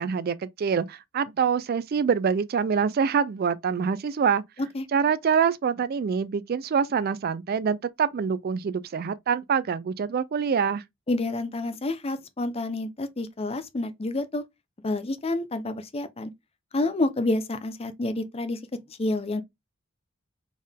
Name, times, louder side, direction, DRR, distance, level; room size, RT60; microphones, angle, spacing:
voice 1, 0.0-4.4 4.9-10.8, right 6 dB, 45° right, 0.3 m, -25 dB
voice 2, 11.1-14.4 14.8-16.3 16.7-18.6 19.0-19.4, left 2 dB, 30° left, 0.6 m, -28 dB
4.3 x 3.6 x 3.4 m
head